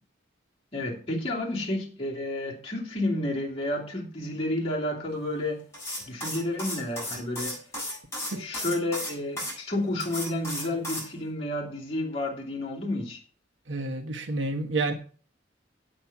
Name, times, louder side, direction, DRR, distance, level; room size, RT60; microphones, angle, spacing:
voice 1, 0.7-5.6 6.0-7.6 8.3-13.2, left 1 dB, 35° left, 2.8 m, -31 dB
sound 1, 5.7-9.5 10.0-11.1, left 1 dB, 15° left, 7.2 m, -34 dB
voice 2, 13.7-14.9, right 3 dB, 75° right, 1.3 m, -29 dB
8.6 x 8.6 x 5.9 m
head